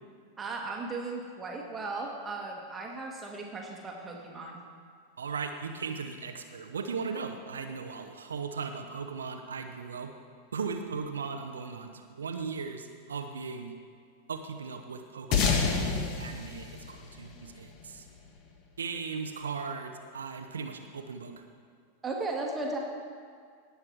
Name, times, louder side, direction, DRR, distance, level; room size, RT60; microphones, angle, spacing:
voice 1, 0.4-4.6 22.0-22.8, right 3 dB, 15° right, 0 dB, 1.5 m, -36 dB
voice 2, 5.2-10.1 10.5-13.7 14.3-18.0 18.8-21.3, right 5 dB, 70° right, 6 dB, 0.7 m, -37 dB
sound 1, 15.3-18.1, left 5 dB, 40° left, 1.4 m, -29 dB
18.5 x 7.1 x 4.6 m, 2.1 s
figure-of-eight pair, 90°, 0 cm